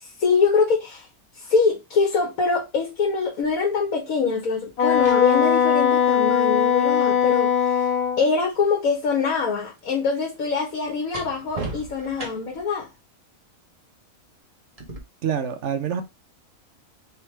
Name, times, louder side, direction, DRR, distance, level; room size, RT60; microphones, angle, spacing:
voice 1, 0.0-1.1 1.4-7.8 8.2-12.9, left 5 dB, 80° left, 1.4 m, -24 dB
sound 1, 3.4-3.6 4.7-8.7 9.0-12.7 14.8-15.0, right 2 dB, 30° right, 1.0 m, -40 dB
Wind instrument woodwind instrument, 4.8-8.2, left 8 dB, 55° left, 1.1 m, -20 dB
voice 2, 15.2-16.0, right 8 dB, 65° right, 0.9 m, -26 dB
3.5 x 3.0 x 4.4 m
omnidirectional pair, 1.5 m